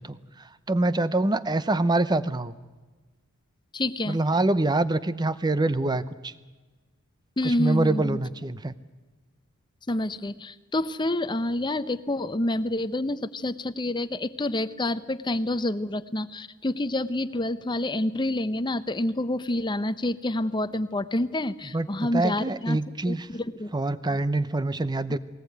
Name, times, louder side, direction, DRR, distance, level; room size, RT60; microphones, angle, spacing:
voice 1, 0.0-2.5 4.1-6.3 7.4-8.7 21.7-23.3 23.7-25.2, right 2 dB, 20° right, 14 dB, 0.7 m, -25 dB
voice 2, 3.7-4.2 7.4-8.2 9.9-23.7, left 1 dB, 20° left, 13 dB, 0.7 m, -28 dB
20.5 x 18.5 x 9.3 m, 1.3 s
head